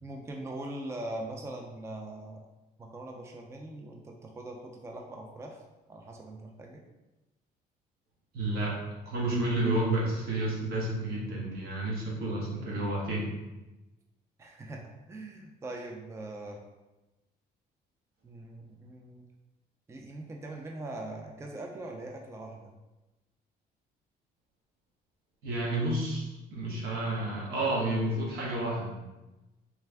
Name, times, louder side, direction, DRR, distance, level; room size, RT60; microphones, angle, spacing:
voice 1, 0.0-2.4 2.8-5.6 5.9-6.8 12.6-13.1 14.4-14.8 15.1-16.6 18.2-19.3 19.9-22.7, right 2 dB, 15° right, 1 dB, 0.4 m, -41 dB
voice 2, 8.3-8.8 9.0-13.3 25.4-26.2 26.5-28.9, right 1 dB, 70° right, -4 dB, 1.3 m, -30 dB
3.3 x 3.3 x 3.4 m, 1.1 s
cardioid pair, 110°, 17 cm